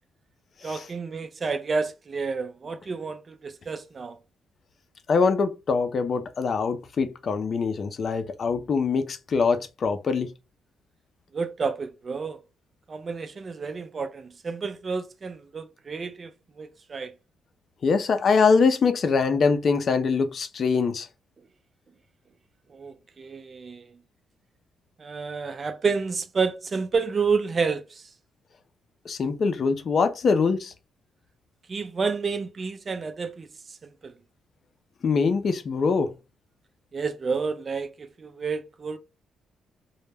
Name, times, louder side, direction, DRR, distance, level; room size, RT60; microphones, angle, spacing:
voice 1, 0.6-4.2 11.3-12.4 12.9-16.3 16.6-17.1 22.7-24.0 25.0-28.1 31.7-34.1 36.9-39.0, right 5 dB, 40° right, 0.3 m, -30 dB
voice 2, 5.1-10.3 17.8-21.1 29.1-30.7 35.0-36.1, left 5 dB, 50° left, 0.4 m, -23 dB
2.1 x 2.1 x 3.2 m
cardioid pair, 90°, 0 cm